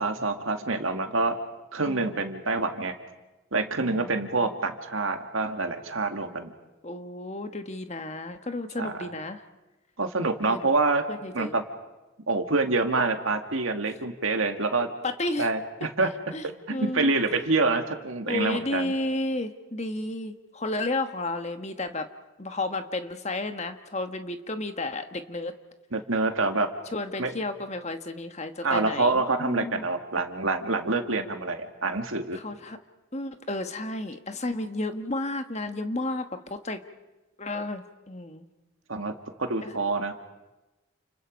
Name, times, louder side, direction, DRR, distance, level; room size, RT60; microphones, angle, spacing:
voice 1, 0.0-1.4 1.7-2.9 3.5-6.5 8.8-9.1 10.0-11.0 11.3-11.6 12.3-14.9 15.4-16.1 16.4-18.9 25.9-26.7 27.2-27.3 28.6-32.4 38.9-39.1 39.4-40.1, right 3 dB, 75° right, 6 dB, 2.1 m, -26 dB
voice 2, 1.9-2.2 3.8-4.5 6.1-6.2 6.8-9.4 10.4-10.7 11.1-11.5 15.0-15.5 16.3-17.1 18.2-22.1 22.4-25.5 26.9-29.9 32.3-32.8 33.1-36.8 37.4-38.4 39.6-39.8, left 2 dB, 30° left, 8 dB, 1.3 m, -32 dB
29.5 x 28.5 x 5.3 m, 1.1 s
head